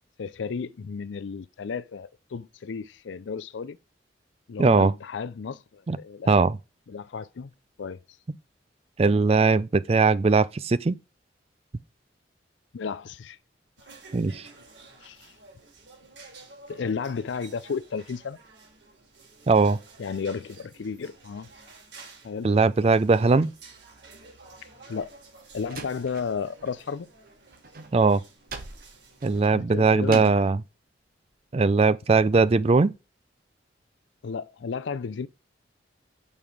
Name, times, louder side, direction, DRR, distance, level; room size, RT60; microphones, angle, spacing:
voice 1, 0.2-3.8 4.5-6.3 6.9-7.5 7.8-8.0 12.7-13.4 15.0-15.3 16.7-18.4 20.0-21.5 22.2-22.5 24.9-25.1 25.5-27.1 29.5-30.3 34.2-35.3, left 5 dB, 80° left, 0.4 m, -33 dB
voice 2, 4.6-4.9 5.9-6.0 6.3-6.6 9.0-11.0 14.1-14.4 19.5-19.8 22.4-23.5 27.9-28.2 29.2-30.6 31.5-32.9, right 4 dB, 35° right, 0.4 m, -20 dB
sound 1, 13.8-29.4, right 3 dB, 70° right, 3.5 m, -51 dB
Slam, 25.0-26.8 27.0-30.5, right 5 dB, 50° right, 1.2 m, -43 dB
6.8 x 5.5 x 4.7 m
head